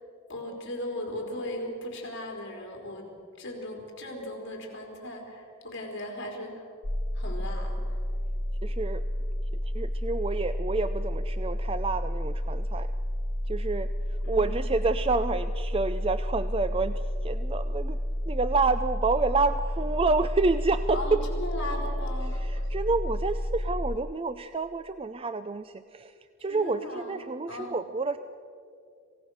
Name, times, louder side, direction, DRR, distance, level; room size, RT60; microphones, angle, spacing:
voice 1, 0.3-3.1 3.4-6.7 7.1-8.0 14.2-14.6 20.9-22.7 26.5-27.2 27.5-27.8, left 1 dB, 55° left, 1 dB, 4.2 m, -37 dB
sound 1, 6.8-24.0, equal, 10° left, 0.6 m, -31 dB
voice 2, 8.6-9.1 9.7-12.9 13.5-18.0 18.3-21.2 22.3-28.2, right 3 dB, 25° right, 11 dB, 0.4 m, -29 dB
27.0 x 17.0 x 6.4 m, 2.4 s
head